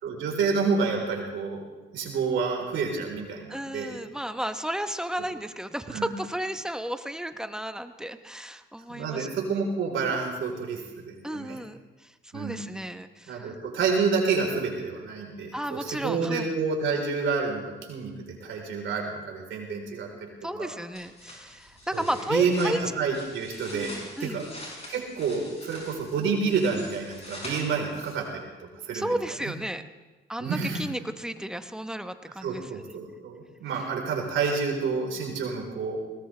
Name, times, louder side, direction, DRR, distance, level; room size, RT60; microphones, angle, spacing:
voice 1, 0.0-1.6 1.9-4.0 5.9-6.1 8.9-11.6 12.3-12.6 13.3-20.7 21.9-23.9 24.2-24.5 24.9-28.4 28.8-29.1 29.4-29.5 30.4-30.8 32.4-36.0, right 5 dB, 75° right, 0 dB, 4.0 m, -29 dB
voice 2, 3.5-9.3 11.2-13.5 15.5-16.5 20.4-22.8 23.7-24.4 28.9-29.8 30.3-32.7, right 1 dB, 5° right, 9 dB, 0.9 m, -33 dB
sound 1, 20.9-28.4, left 1 dB, 30° left, 6.0 m, -44 dB
20.0 x 18.0 x 3.3 m, 1.2 s
cardioid pair, 90°, 20 cm